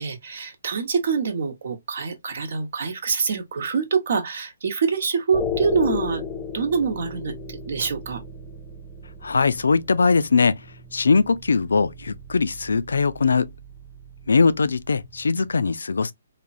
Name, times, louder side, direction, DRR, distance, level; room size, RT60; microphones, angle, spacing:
voice 1, 0.0-6.2 6.5-8.2, right 5 dB, 60° right, 0.9 m, -25 dB
sound 1, 5.3-15.5, left 5 dB, 10° left, 0.5 m, -35 dB
voice 2, 9.2-10.6 10.9-13.5 14.3-16.1, left 4 dB, 80° left, 0.3 m, -21 dB
3.3 x 2.1 x 2.5 m
hypercardioid pair, 150°, 0 cm